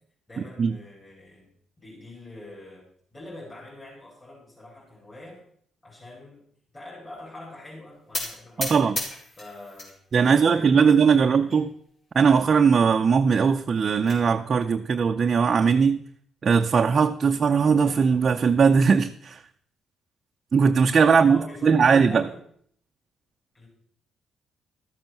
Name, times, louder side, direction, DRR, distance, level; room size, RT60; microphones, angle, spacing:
voice 1, 0.3-1.5 1.8-5.4 5.8-6.4 6.7-8.9 9.4-9.9 10.2-11.5 21.1-22.4 23.5-23.7, left 2 dB, 25° left, -4 dB, 4.6 m, -44 dB
sound 1, 8.1-9.9 10.3-10.9 11.5-11.6 11.9-12.0 12.3-12.4 13.6-14.2, left 2 dB, 50° left, 4.5 m, -34 dB
voice 2, 8.6-9.0 10.1-11.7 12.1-16.0 16.4-19.4 20.5-22.2, right 6 dB, 45° right, 4 dB, 0.6 m, -19 dB
13.0 x 7.5 x 5.9 m, 0.63 s
cardioid pair, 90°, 0 cm